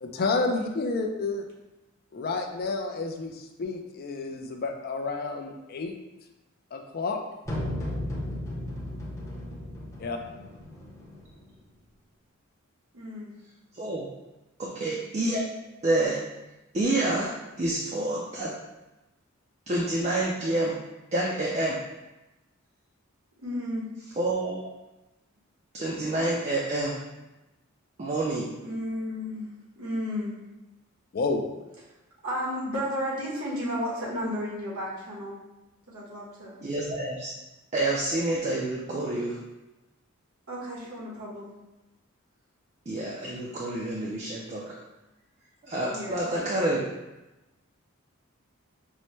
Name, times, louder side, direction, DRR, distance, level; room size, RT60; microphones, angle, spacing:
voice 1, 0.0-1.5 2.1-5.9 6.7-7.2 10.0-10.2 31.1-31.5, left 3 dB, 45° left, 5 dB, 0.4 m, -30 dB
sound 1, 7.5-11.5, left 1 dB, 15° left, 0.7 m, -35 dB
voice 2, 12.9-13.3 23.4-23.8 28.6-29.5 29.8-30.3 32.2-35.4 35.9-36.5 40.5-41.5 45.9-46.9, equal, 80° right, -6 dB, 1.2 m, -33 dB
voice 3, 13.7-14.1 14.6-15.5 15.8-16.2 16.7-18.5 19.7-20.8 21.1-21.8 24.2-24.7 25.7-27.0 28.0-28.5 36.6-37.3 37.7-39.4 42.9-44.8 45.6-46.8, right 2 dB, 30° right, -3 dB, 0.4 m, -28 dB
5.4 x 2.1 x 3.1 m, 1.0 s
head